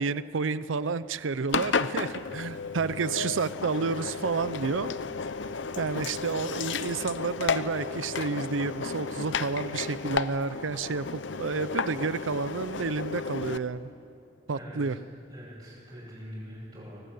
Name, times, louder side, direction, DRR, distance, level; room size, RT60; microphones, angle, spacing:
voice 1, 0.0-5.0 5.8-13.9 14.5-15.0, right 4 dB, 80° right, 15 dB, 0.6 m, -30 dB
Engine, 1.5-13.6, left 5 dB, 65° left, 0.8 m, -33 dB
voice 2, 14.5-15.0 15.3-17.0, equal, 30° right, -9 dB, 7.2 m, -43 dB
24.5 x 18.5 x 9.4 m, 2.6 s
head